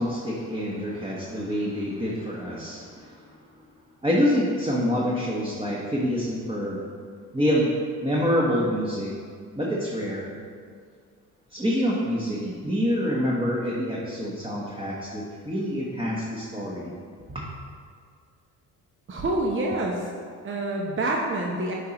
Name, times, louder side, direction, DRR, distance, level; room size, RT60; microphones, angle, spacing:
voice 1, 0.0-3.2 4.0-6.8 7.3-7.7 8.0-9.1 9.6-10.3 11.5-16.9 17.3-17.4, equal, 15° right, -5 dB, 1.1 m, -26 dB
voice 2, 19.1-20.1 20.4-21.7, right 2 dB, 30° right, -1 dB, 0.8 m, -27 dB
8.1 x 4.7 x 2.9 m, 2.1 s
supercardioid pair, 60°, 38 cm